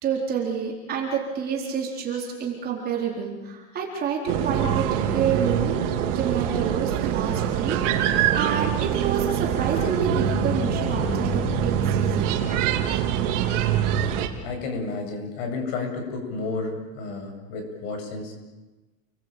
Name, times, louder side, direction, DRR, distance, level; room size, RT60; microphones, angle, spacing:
voice 1, 0.0-12.4, right 7 dB, 20° right, -1 dB, 4.2 m, -29 dB
sound 1, 4.3-14.3, right 8 dB, 55° right, 3.6 m, -24 dB
voice 2, 14.4-18.3, left 3 dB, 45° left, 4 dB, 7.9 m, -31 dB
29.5 x 21.5 x 9.1 m, 1.2 s
supercardioid pair, 180°, 43 cm